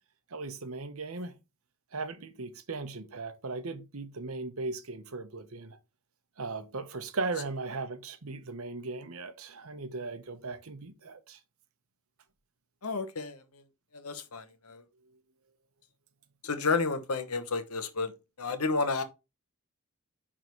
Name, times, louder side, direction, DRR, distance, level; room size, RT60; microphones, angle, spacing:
voice 1, 0.3-1.3 1.9-5.8 6.4-11.4, right 3 dB, 70° right, 0.9 m, -37 dB
voice 2, 12.8-13.4 13.9-14.8 16.4-18.1 18.4-19.0, left 4 dB, 85° left, 1.1 m, -31 dB
9.3 x 3.8 x 3.1 m
head